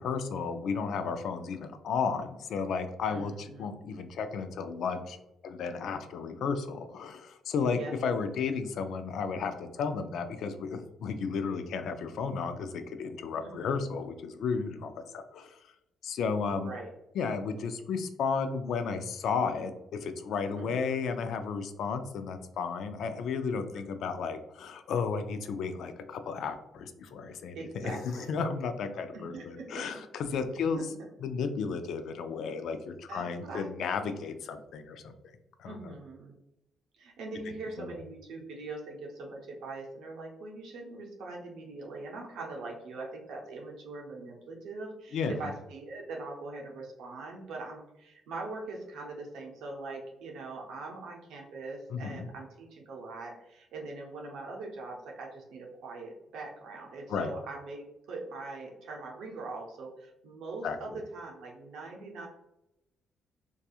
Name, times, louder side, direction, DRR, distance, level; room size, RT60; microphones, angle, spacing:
voice 1, 0.0-5.2 5.4-15.6 16.0-16.7 17.1-30.8 31.2-35.1 35.6-35.8 37.8-38.0 45.1-45.5 51.9-52.3 57.1-57.3 60.6-61.0, left 5 dB, 70° left, 9 dB, 0.3 m, -33 dB
voice 2, 3.1-3.7 7.7-7.9 13.4-13.7 16.5-16.9 20.6-20.9 23.7-23.8 27.5-28.3 29.1-30.0 30.8-30.9 33.1-33.7 35.7-36.3 37.0-62.3, right 3 dB, 85° right, -1 dB, 0.6 m, -42 dB
2.7 x 2.3 x 2.3 m, 0.87 s
cardioid pair, 90°, 0 cm